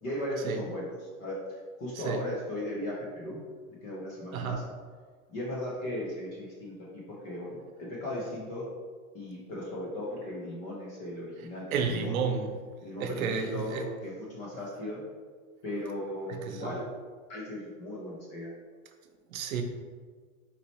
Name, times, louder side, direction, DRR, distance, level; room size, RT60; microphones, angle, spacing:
voice 1, 0.0-0.9 1.2-3.4 3.7-4.6 5.3-8.7 9.1-12.2 12.8-15.0 15.6-16.8 17.3-18.5, left 1 dB, 20° left, -4 dB, 0.4 m, -37 dB
voice 2, 2.0-2.3 4.3-4.6 11.7-12.6 13.0-13.9 16.3-16.8 19.3-19.6, right 6 dB, 70° right, 6 dB, 0.7 m, -31 dB
4.3 x 3.9 x 3.0 m, 1.5 s
hypercardioid pair, 140°, 43 cm